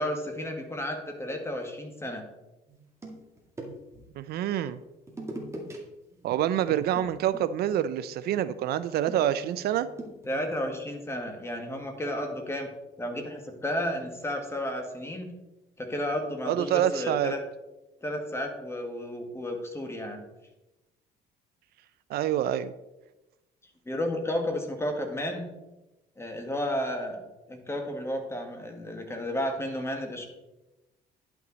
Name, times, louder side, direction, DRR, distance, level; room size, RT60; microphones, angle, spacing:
voice 1, 0.0-2.2 10.3-12.7 13.0-15.3 15.8-17.4 18.0-20.2 23.9-25.5 26.2-27.2 27.5-30.3, left 1 dB, 15° left, 4 dB, 1.8 m, -32 dB
sound 1, 2.7-4.1 5.1-5.8 6.1-6.3 6.6-10.7, right 2 dB, 15° right, 1.9 m, -43 dB
voice 2, 4.2-4.8 6.2-9.9 16.5-17.3 22.1-22.7, right 11 dB, 70° right, 14 dB, 0.5 m, -27 dB
10.5 x 5.9 x 4.0 m, 0.99 s
cardioid pair, 110°, 17 cm